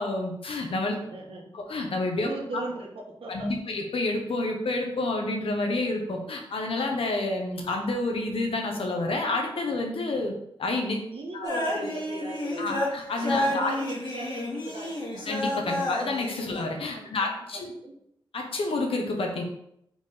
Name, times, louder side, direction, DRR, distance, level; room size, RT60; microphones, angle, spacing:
voice 1, 0.0-1.0 1.5-2.3 3.3-10.3 10.6-11.0 11.3-11.5 12.6-13.7 15.3-17.6 18.3-19.4, left 2 dB, 85° left, 2 dB, 1.2 m, -29 dB
voice 2, 1.0-1.5 2.2-3.5 11.1-12.9 13.2-15.3 15.6-15.9 16.4-16.5 16.9-17.9, right 2 dB, 80° right, 0 dB, 1.5 m, -39 dB
sound 1, 11.4-16.6, left 1 dB, 50° left, 2.2 m, -30 dB
4.6 x 4.6 x 5.1 m, 0.75 s
wide cardioid pair, 130°, 9 cm